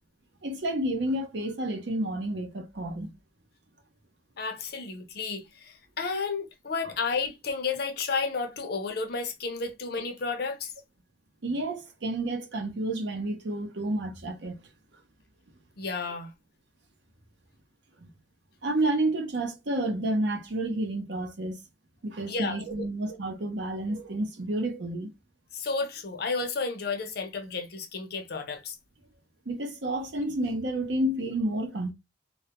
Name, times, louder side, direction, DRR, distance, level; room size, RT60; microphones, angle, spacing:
voice 1, 0.4-3.1 11.4-14.6 18.0-18.1 18.6-21.6 22.0-25.1 29.5-31.9, right 1 dB, 65° right, 0.6 m, -30 dB
voice 2, 4.4-10.7 15.8-16.3 22.3-22.9 25.5-28.8, left 4 dB, 55° left, 0.5 m, -32 dB
2.2 x 2.0 x 2.8 m
head